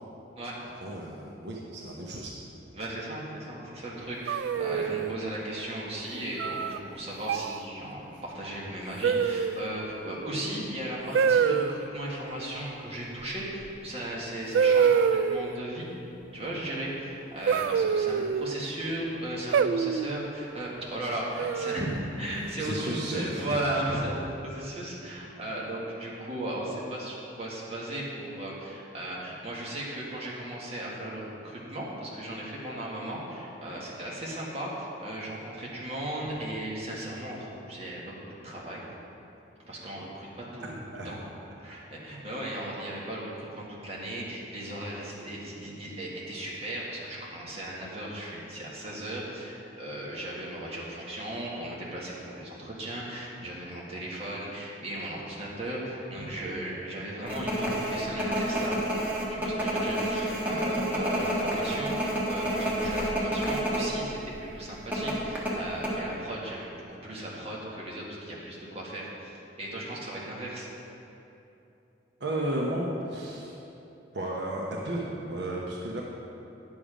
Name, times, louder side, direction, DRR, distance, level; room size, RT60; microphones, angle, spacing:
voice 1, 0.8-2.3 22.6-23.6 40.9-41.1 72.2-73.6 74.1-76.0, right 1 dB, 70° right, -3 dB, 1.0 m, -33 dB
voice 2, 2.7-15.9 16.3-38.8 39.7-40.8 41.0-41.2 41.6-58.9 59.1-70.7, right 1 dB, 35° right, -5 dB, 1.7 m, -36 dB
sound 1, 4.3-5.1 6.4-6.8 7.3-7.6 9.0-9.7 11.1-11.7 13.7-13.8 14.5-15.5 17.5-18.6 19.5-20.2 21.4-22.0, right 6 dB, 85° right, 0.3 m, -25 dB
sound 2, 57.3-63.9 64.2-64.3 64.9-65.9, equal, 10° right, 1.4 m, -29 dB
9.6 x 7.2 x 5.0 m, 2.9 s
head